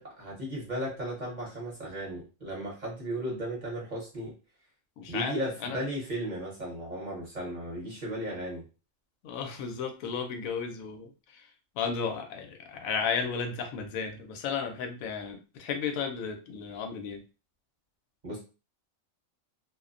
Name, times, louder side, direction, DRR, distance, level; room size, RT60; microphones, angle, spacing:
voice 1, 0.0-4.3 5.1-8.6 18.2-18.4, right 1 dB, 40° right, -4 dB, 0.9 m, -35 dB
voice 2, 5.0-5.8 9.2-11.4 11.8-17.2, left 6 dB, 85° left, 6 dB, 1.0 m, -34 dB
2.5 x 2.1 x 2.4 m, 0.32 s
omnidirectional pair, 1.4 m